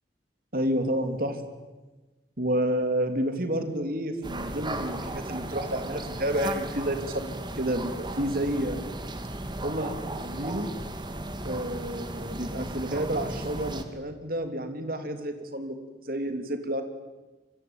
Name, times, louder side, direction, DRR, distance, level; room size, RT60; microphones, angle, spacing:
voice 1, 0.5-1.4 2.4-8.9 9.6-10.7 11.5-15.7 16.1-16.8, right 1 dB, 55° right, 7 dB, 3.1 m, -30 dB
sound 1, 4.2-13.8, right 1 dB, 25° right, 2.3 m, -35 dB
27.0 x 23.0 x 9.0 m, 1.2 s
head